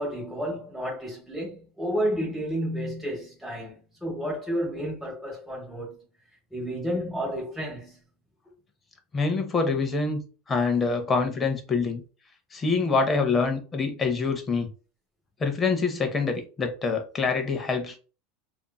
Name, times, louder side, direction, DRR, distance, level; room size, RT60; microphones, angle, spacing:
voice 1, 0.0-3.7 4.0-6.0 6.5-8.0, equal, ahead, 1.0 m, -31 dB
voice 2, 9.1-10.2 10.5-12.0 12.5-14.7 15.4-18.0, left 4 dB, 20° left, 0.6 m, -25 dB
2.9 x 2.4 x 2.2 m
supercardioid pair, 155°, 0 cm